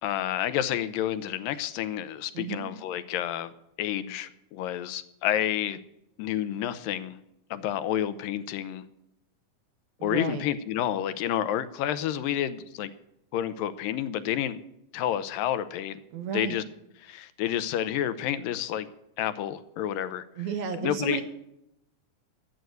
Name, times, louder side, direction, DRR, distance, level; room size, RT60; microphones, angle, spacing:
voice 1, 0.0-3.5 3.8-5.8 6.2-7.2 7.5-8.8 10.0-12.9 13.3-14.6 14.9-16.0 16.3-16.6 17.0-18.9 19.2-20.2 20.8-21.2, left 11 dB, 85° left, 14 dB, 2.4 m, -29 dB
voice 2, 2.3-2.7 10.0-10.5 16.1-16.6 20.4-21.2, right 6 dB, 65° right, 7 dB, 2.1 m, -32 dB
11.5 x 7.8 x 9.3 m, 0.82 s
omnidirectional pair, 3.9 m